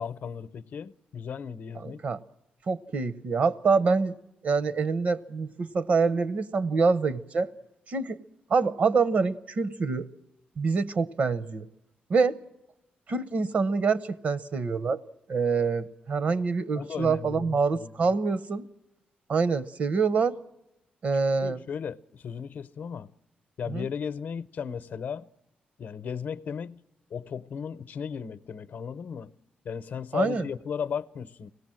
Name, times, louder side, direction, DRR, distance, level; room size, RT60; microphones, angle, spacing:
voice 1, 0.0-2.0 16.8-18.1 21.4-23.1 23.6-25.3 25.8-26.8 27.1-29.3 29.6-31.5, left 7 dB, 65° left, 0.7 m, -35 dB
voice 2, 1.8-2.2 2.7-4.2 4.4-7.5 7.9-8.2 8.5-10.1 10.6-11.7 12.1-12.4 13.1-15.0 15.3-18.7 19.3-20.3 21.0-21.6 23.7-23.9 30.1-30.4, right 4 dB, 55° right, 0.7 m, -26 dB
24.5 x 18.0 x 7.6 m
cardioid pair, 115°, 3 cm